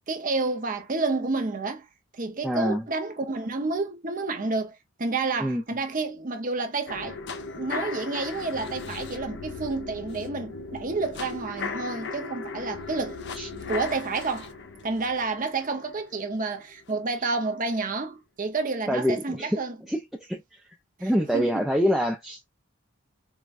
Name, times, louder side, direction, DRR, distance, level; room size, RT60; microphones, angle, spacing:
voice 1, 0.1-1.9 2.1-13.2 13.7-14.5 14.8-19.8 21.0-21.7, right 3 dB, 35° right, 0.6 m, -30 dB
voice 2, 2.4-2.8 5.4-5.6 13.4-13.5 18.9-19.6 19.9-20.4 21.0-22.5, equal, ahead, 0.4 m, -25 dB
sound 1, 6.9-16.9 17.3-17.4, left 4 dB, 50° left, 0.5 m, -37 dB
4.6 x 2.2 x 2.4 m
head